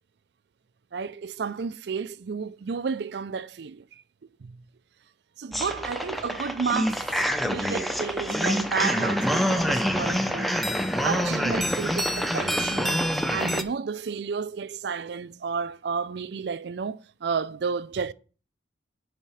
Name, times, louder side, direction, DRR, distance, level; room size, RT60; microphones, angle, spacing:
voice 1, 0.9-4.0 4.4-4.6 5.4-10.6 11.0-13.0 13.3-18.1, right 5 dB, 60° right, 0.4 m, -31 dB
sound 1, 5.5-13.6, equal, ahead, 0.6 m, -26 dB
10.0 x 4.2 x 5.6 m
head